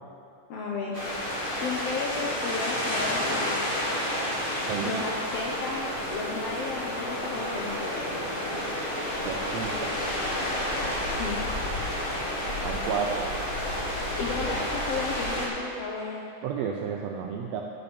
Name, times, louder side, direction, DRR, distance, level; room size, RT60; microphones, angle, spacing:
voice 1, 0.5-1.0 1.6-3.9 4.8-7.9 10.7-12.0 14.2-16.2, left 4 dB, 70° left, -2 dB, 1.5 m, -34 dB
sound 1, 0.9-15.5, left 1 dB, 50° left, 0.6 m, -30 dB
voice 2, 4.7-5.0 9.2-10.1 12.6-13.3 16.4-17.6, right 7 dB, 90° right, 1 dB, 1.5 m, -32 dB
10.5 x 6.8 x 5.2 m, 2.5 s
omnidirectional pair, 3.6 m